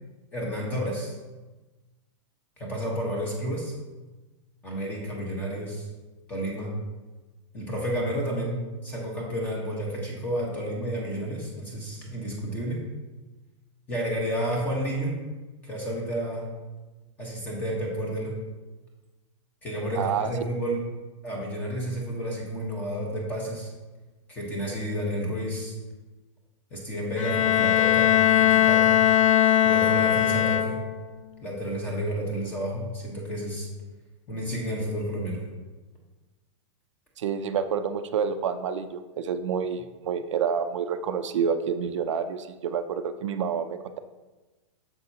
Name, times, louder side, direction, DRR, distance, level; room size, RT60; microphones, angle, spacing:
voice 1, 0.3-1.1 2.6-3.7 4.6-5.9 6.3-6.7 7.5-12.8 13.9-15.2 15.6-16.5 17.2-18.4 19.6-20.8 21.2-23.7 24.3-25.7 26.7-29.0 29.6-30.8 31.4-33.7 34.3-35.4, equal, 10° left, -2 dB, 1.2 m, -31 dB
voice 2, 20.0-20.3 37.2-44.0, right 7 dB, 70° right, 9 dB, 0.5 m, -28 dB
Bowed string instrument, 27.2-31.1, left 11 dB, 85° left, 0.6 m, -20 dB
7.7 x 7.1 x 2.8 m, 1.2 s
supercardioid pair, 180°, 16 cm